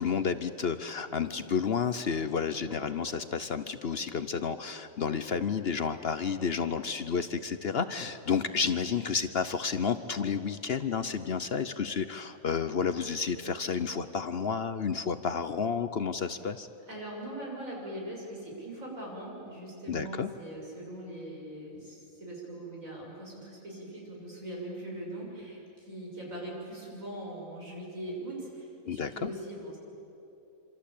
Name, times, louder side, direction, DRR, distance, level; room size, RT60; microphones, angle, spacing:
voice 1, 0.0-16.7 19.9-20.3 28.9-29.3, left 6 dB, 50° left, 11 dB, 0.9 m, -31 dB
voice 2, 16.9-29.8, right 1 dB, 70° right, -2 dB, 7.4 m, -41 dB
26.5 x 26.0 x 8.5 m, 2.9 s
omnidirectional pair, 1.4 m